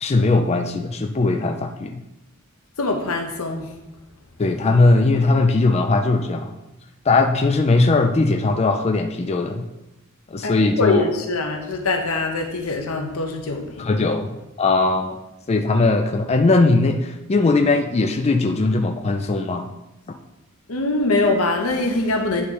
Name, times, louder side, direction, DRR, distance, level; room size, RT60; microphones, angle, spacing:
voice 1, 0.0-1.9 4.4-6.5 7.1-9.6 10.3-11.1 13.8-14.3 14.6-15.2 15.5-19.7, left 3 dB, 30° left, 5 dB, 0.4 m, -19 dB
voice 2, 2.8-3.7 10.4-13.9 20.7-22.4, left 2 dB, 80° left, 3 dB, 1.1 m, -23 dB
9.6 x 3.2 x 5.5 m, 0.94 s
head